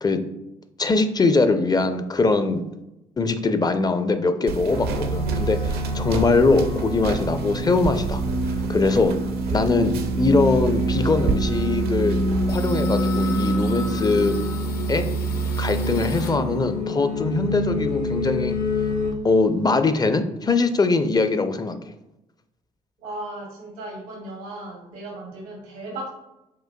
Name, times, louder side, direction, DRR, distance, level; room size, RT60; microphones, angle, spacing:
voice 1, 0.8-2.6 3.2-9.1 9.5-12.2 12.5-14.4 14.9-15.1 15.6-18.6 19.2-21.8, left 3 dB, 20° left, 9 dB, 0.4 m, -22 dB
sound 1, 4.5-12.5, right 4 dB, 60° right, 0.5 m, -31 dB
sound 2, 4.7-19.1, right 1 dB, 80° left, 1.1 m, -25 dB
sound 3, 12.5-16.8 17.2-18.5 18.8-18.9 19.2-19.9, left 4 dB, 55° left, 0.7 m, -42 dB
voice 2, 23.0-26.2, right 1 dB, 80° right, -2 dB, 0.9 m, -36 dB
5.8 x 2.5 x 2.2 m, 0.91 s
hypercardioid pair, 45°, 18 cm